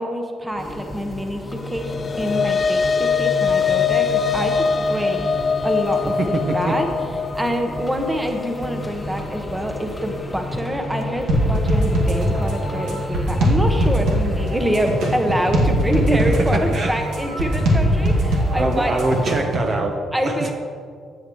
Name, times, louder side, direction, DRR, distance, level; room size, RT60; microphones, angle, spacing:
voice 1, 0.0-6.9 7.3-19.0 20.1-20.5, equal, 10° right, 4 dB, 1.1 m, -26 dB
sound 1, 0.6-19.4, left 1 dB, 15° left, 1.2 m, -33 dB
sound 2, 1.6-10.2, left 6 dB, 40° left, 0.4 m, -23 dB
voice 2, 6.2-6.8 16.1-16.9 18.5-20.5, right 2 dB, 45° right, 4 dB, 0.9 m, -23 dB
sound 3, 11.3-19.7, equal, 80° right, 2.1 m, -20 dB
14.0 x 8.3 x 3.1 m, 2.2 s
cardioid pair, 90°, 0 cm